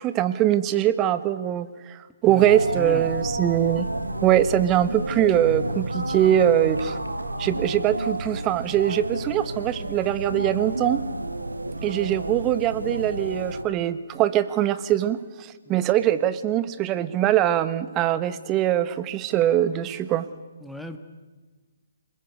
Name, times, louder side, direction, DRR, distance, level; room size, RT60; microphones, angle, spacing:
voice 1, 0.0-3.9 4.2-7.0 7.4-11.0 11.8-20.3, right 12 dB, 20° right, 13 dB, 1.3 m, -22 dB
sound 1, 2.4-13.6, right 1 dB, 90° right, 2.0 m, -30 dB
voice 2, 2.7-3.1 15.7-15.8 20.6-21.0, left 2 dB, ahead, 6 dB, 1.7 m, -38 dB
29.0 x 21.0 x 8.4 m, 1.3 s
figure-of-eight pair, 135°, 0 cm